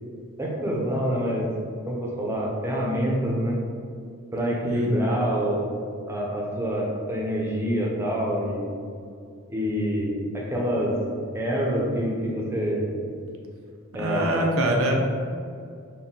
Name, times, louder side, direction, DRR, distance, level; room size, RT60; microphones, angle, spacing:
voice 1, 0.4-1.5 1.9-3.6 4.3-5.6 6.0-8.6 9.5-11.0 11.3-12.9 13.9-14.5, equal, 10° right, -3 dB, 0.5 m, -26 dB
voice 2, 4.6-5.0 14.0-14.9, right 1 dB, 70° right, 0 dB, 0.6 m, -24 dB
4.1 x 2.1 x 3.7 m, 2.3 s
head